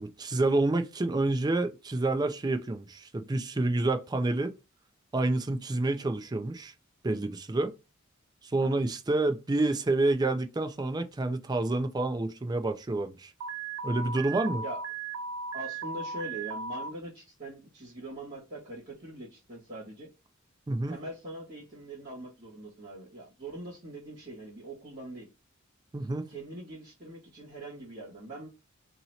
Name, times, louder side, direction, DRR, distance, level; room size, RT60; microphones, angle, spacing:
voice 1, 0.0-4.5 5.1-6.7 7.0-7.7 8.4-13.3 13.8-14.6 20.7-21.0 25.9-26.2, right 2 dB, 20° right, 0.4 m, -28 dB
Alarm, 13.4-16.9, right 4 dB, 85° right, 0.5 m, -37 dB
voice 2, 15.5-20.1 20.9-25.3 26.3-28.5, right 1 dB, 45° right, 1.6 m, -42 dB
2.9 x 2.7 x 4.1 m
head